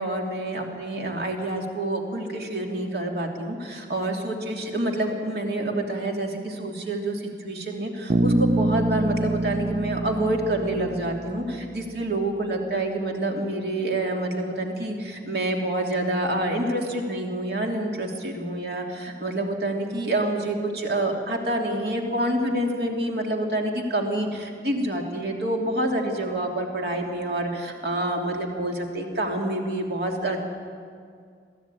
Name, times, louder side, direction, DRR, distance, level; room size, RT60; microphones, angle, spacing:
voice 1, 0.0-30.4, right 1 dB, 60° right, 1 dB, 3.0 m, -27 dB
Bass guitar, 8.1-12.2, right 1 dB, 35° right, 0.6 m, -26 dB
23.0 x 14.5 x 9.3 m, 2.2 s
head